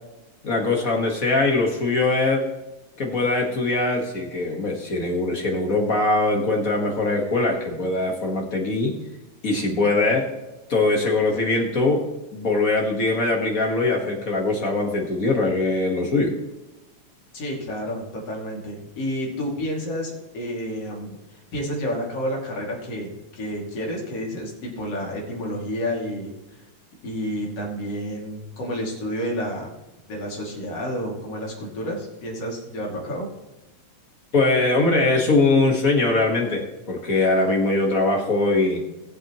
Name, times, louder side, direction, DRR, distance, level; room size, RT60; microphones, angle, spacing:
voice 1, 0.4-2.4 3.0-8.9 9.4-10.3 10.7-12.0 12.3-16.3 34.3-38.8, left 2 dB, 40° left, 1 dB, 1.4 m, -22 dB
voice 2, 17.3-26.3 27.0-29.7 30.1-33.3, equal, 55° left, -2 dB, 3.5 m, -30 dB
19.5 x 7.7 x 3.0 m, 1.0 s
omnidirectional pair, 3.4 m